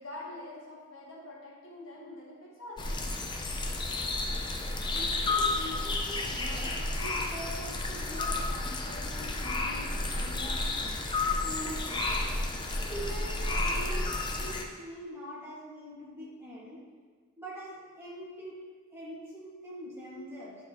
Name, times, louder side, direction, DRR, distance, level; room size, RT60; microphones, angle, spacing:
voice 1, 0.0-2.9 6.8-6.9 8.9-9.0 19.9-20.3, left 1 dB, 70° left, -4 dB, 1.5 m, -46 dB
sound 1, 2.8-14.6, left 2 dB, 25° left, 0.5 m, -31 dB
voice 2, 4.9-10.7 11.4-12.2 12.8-14.1 14.4-16.8 17.4-18.6 18.9-20.6, equal, 15° right, -8 dB, 1.9 m, -43 dB
11.0 x 4.4 x 3.0 m, 1.5 s
head